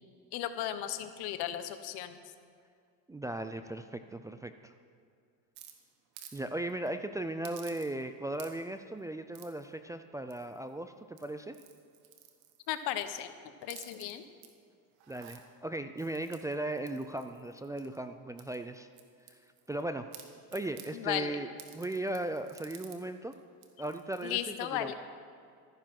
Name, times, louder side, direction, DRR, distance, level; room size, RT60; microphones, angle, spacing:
voice 1, 0.3-2.2 12.7-13.3 13.6-14.3 20.9-21.4 24.2-24.9, left 12 dB, 65° left, 10 dB, 1.1 m, -35 dB
voice 2, 3.1-4.7 6.3-11.6 15.1-18.9 19.7-20.1 20.5-23.3 23.8-24.4 24.7-24.9, right 1 dB, 10° right, 8 dB, 0.4 m, -37 dB
sound 1, 5.6-6.4 6.7-6.9 7.4-8.1 8.3-8.8 9.3-9.7 10.3-10.7 11.1-13.2 13.6-14.5 14.9-15.4 16.0-18.0 18.4-19.8 20.1-20.9 21.6-23.0 23.3-23.4 23.6-24.2, right 10 dB, 70° right, 1.7 m, -53 dB
13.5 x 10.5 x 6.0 m, 2.3 s
supercardioid pair, 110°, 41 cm